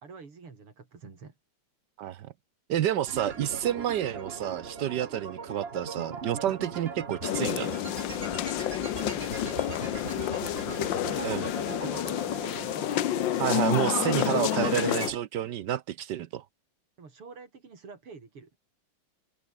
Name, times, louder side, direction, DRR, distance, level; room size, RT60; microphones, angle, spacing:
voice 1, 0.0-1.4 9.0-10.4 10.7-11.3 11.6-12.9 17.0-18.5, right 4 dB, 85° right, 4.7 m, -47 dB
voice 2, 2.0-2.3 2.7-7.7 11.2-11.4 13.4-16.4, right 11 dB, 65° right, 1.2 m, -29 dB
sound 1, 3.1-15.2, right 5 dB, 30° right, 1.5 m, -39 dB
sound 2, 7.2-15.1, left 13 dB, 65° left, 1.4 m, -29 dB
omnidirectional pair, 2.4 m